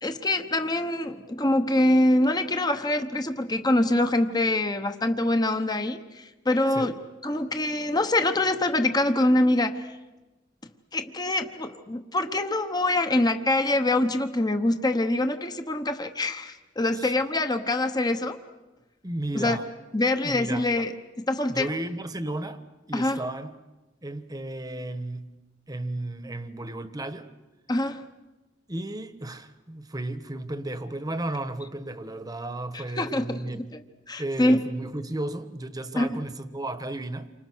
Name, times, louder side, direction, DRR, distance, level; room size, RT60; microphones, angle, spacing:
voice 1, 0.0-7.0 7.2-9.9 10.9-18.4 19.3-19.6 19.9-20.9 21.2-21.7 22.9-23.3 27.7-28.0 32.7-33.6 34.1-34.6 36.0-36.2, left 1 dB, 20° left, 1.1 m, -24 dB
voice 2, 19.0-19.7 20.2-20.7 21.5-22.6 22.9-23.5 24.0-25.3 25.7-27.3 28.7-33.8 34.2-37.3, right 1 dB, 20° right, 1.3 m, -34 dB
29.0 x 25.5 x 6.3 m
head